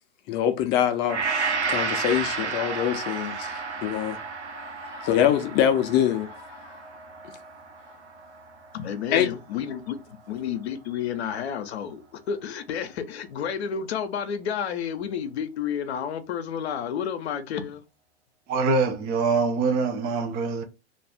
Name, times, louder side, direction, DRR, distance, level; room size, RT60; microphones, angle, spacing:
voice 1, 0.3-4.2 4.5-6.7 9.1-9.3, left 10 dB, 35° left, 0.5 m, -25 dB
Gong, 1.1-9.4 9.9-10.0, right 5 dB, 90° right, 0.7 m, -32 dB
voice 2, 8.7-17.8, left 8 dB, 70° left, 0.7 m, -31 dB
voice 3, 18.5-20.6, right 4 dB, 30° right, 0.5 m, -24 dB
2.5 x 2.4 x 3.5 m
hypercardioid pair, 110°, 33 cm